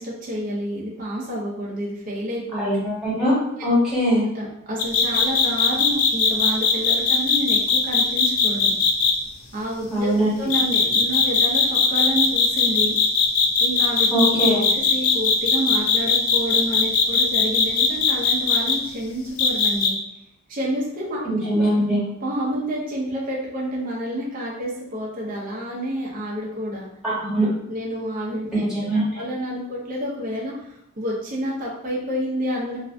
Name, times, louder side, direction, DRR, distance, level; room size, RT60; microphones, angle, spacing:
voice 1, 0.0-2.8 3.6-3.7 4.3-8.8 9.5-10.1 10.4-13.0 13.6-14.4 14.7-19.9 20.5-21.6 22.2-26.9 27.7-28.7 29.2-32.8, equal, 40° right, -4 dB, 0.5 m, -29 dB
voice 2, 2.5-4.2 9.9-10.3 14.1-14.7 21.2-22.0 27.0-27.5 28.5-29.2, equal, ahead, -9 dB, 1.0 m, -21 dB
sound 1, 4.8-9.1 10.5-18.8 19.4-19.9, left 5 dB, 70° left, 0.3 m, -19 dB
2.5 x 2.1 x 2.5 m, 0.83 s
head